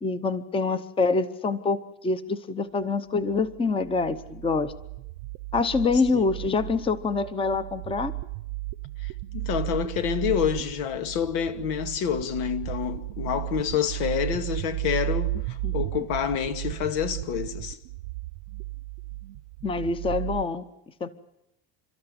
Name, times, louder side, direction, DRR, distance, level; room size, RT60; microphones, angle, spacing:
voice 1, 0.0-4.7 5.5-8.1 15.6-15.7 19.6-20.6 21.0-21.1, left 4 dB, 15° left, 0.9 m, -26 dB
sound 1, 3.3-20.5, right 20 dB, 75° right, 0.9 m, -34 dB
voice 2, 9.0-17.8, left 9 dB, 80° left, 2.3 m, -28 dB
29.5 x 13.5 x 9.7 m
cardioid pair, 155°, 39 cm